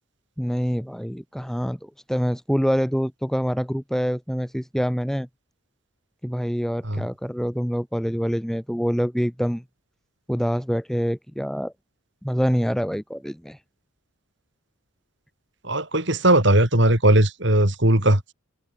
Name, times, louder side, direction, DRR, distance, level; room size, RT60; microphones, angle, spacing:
voice 1, 0.4-5.3 6.2-9.6 10.3-11.7 12.2-13.6, equal, ahead, 7.9 m, -25 dB
voice 2, 15.6-18.2, right 1 dB, 55° right, 3.9 m, -18 dB
head